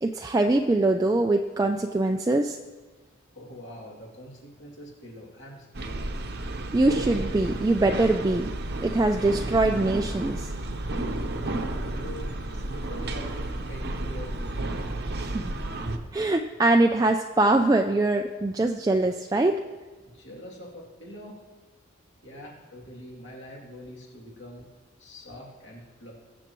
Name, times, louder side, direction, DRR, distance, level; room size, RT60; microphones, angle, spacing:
voice 1, 0.0-2.6 6.7-8.5 8.8-10.5 15.3-15.5 16.1-19.6, right 2 dB, 15° right, 4 dB, 0.3 m, -23 dB
voice 2, 3.3-6.1 11.6-14.8 15.2-15.4 20.0-21.4 22.2-24.7 25.0-26.2, equal, 65° left, -3 dB, 2.7 m, -44 dB
sound 1, 5.7-16.0, right 2 dB, 50° right, 0.8 m, -32 dB
21.0 x 7.1 x 3.0 m, 1.3 s
head